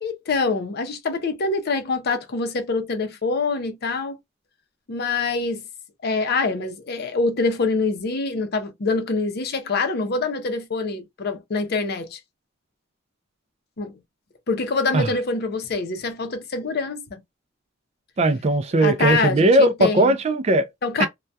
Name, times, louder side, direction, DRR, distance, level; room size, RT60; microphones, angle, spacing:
voice 1, 0.0-4.2 4.9-5.6 6.0-12.2 13.8-13.9 14.5-17.2 18.8-20.1 20.8-21.1, left 3 dB, 55° left, 0.5 m, -25 dB
voice 2, 18.2-20.7 21.0-21.1, right 1 dB, 35° right, 0.3 m, -18 dB
2.2 x 2.2 x 2.6 m
head